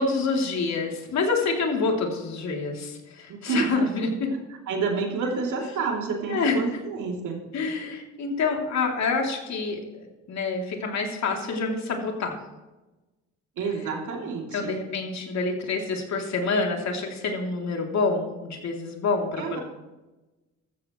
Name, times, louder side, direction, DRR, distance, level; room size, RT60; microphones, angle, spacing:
voice 1, 0.0-4.3 6.3-6.6 7.5-12.4 14.5-19.6, left 4 dB, 65° left, 1 dB, 3.1 m, -27 dB
voice 2, 3.3-3.6 4.3-4.4 4.7-7.5 13.6-14.8 19.4-19.6, right 4 dB, 80° right, 0 dB, 3.1 m, -29 dB
14.5 x 14.0 x 3.2 m, 1.1 s
cardioid pair, 90°, 30 cm